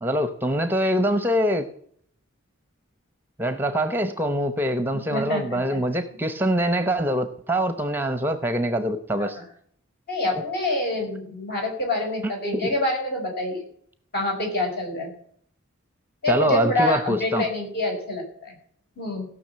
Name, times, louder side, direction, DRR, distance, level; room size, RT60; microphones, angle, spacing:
voice 1, 0.0-1.7 3.4-9.4 12.2-12.3 12.6-12.7 16.3-17.4, right 1 dB, 10° right, 10 dB, 0.8 m, -24 dB
voice 2, 5.1-5.8 9.2-9.4 10.1-13.6 14.1-15.1 16.2-18.5 19.0-19.3, left 2 dB, 50° left, 1 dB, 5.5 m, -26 dB
16.5 x 6.2 x 7.5 m, 0.63 s
head